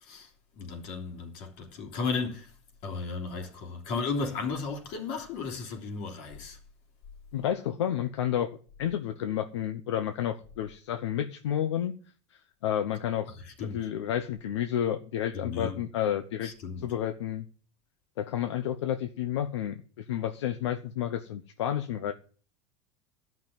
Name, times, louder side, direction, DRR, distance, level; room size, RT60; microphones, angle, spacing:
voice 1, 0.5-2.5 2.8-6.6 13.4-13.9 15.3-15.8 16.4-16.9, left 4 dB, 65° left, 3.3 m, -35 dB
voice 2, 7.3-12.0 12.3-13.3 13.6-16.5 16.8-17.5 18.2-22.1, left 10 dB, 85° left, 1.0 m, -31 dB
12.0 x 6.0 x 8.9 m
supercardioid pair, 105°, 15 cm